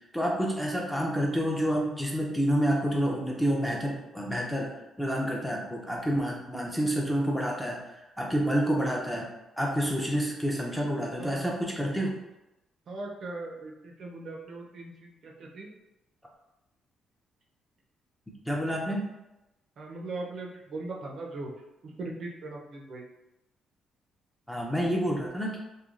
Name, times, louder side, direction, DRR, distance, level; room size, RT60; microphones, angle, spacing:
voice 1, 0.1-9.3 9.6-12.2 18.5-19.0 24.5-25.6, equal, 5° left, -2 dB, 0.4 m, -28 dB
voice 2, 11.2-11.6 12.9-15.7 18.7-19.0 19.8-21.5 21.8-23.1, right 2 dB, 50° right, 0 dB, 0.4 m, -39 dB
3.1 x 2.2 x 2.4 m, 0.94 s
cardioid pair, 135°, 0 cm